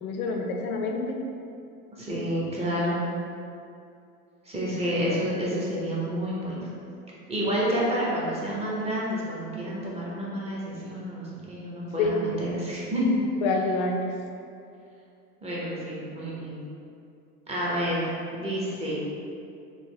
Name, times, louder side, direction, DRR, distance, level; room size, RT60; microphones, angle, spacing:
voice 1, 0.0-1.2 12.0-12.2 13.4-14.1, left 3 dB, 65° left, 3 dB, 0.6 m, -27 dB
voice 2, 2.0-3.0 4.4-6.6 7.3-13.0 15.4-16.6 17.5-18.1 18.3-18.9, equal, 15° right, -6 dB, 0.7 m, -29 dB
3.7 x 2.1 x 3.2 m, 2.5 s
hypercardioid pair, 100°, 46 cm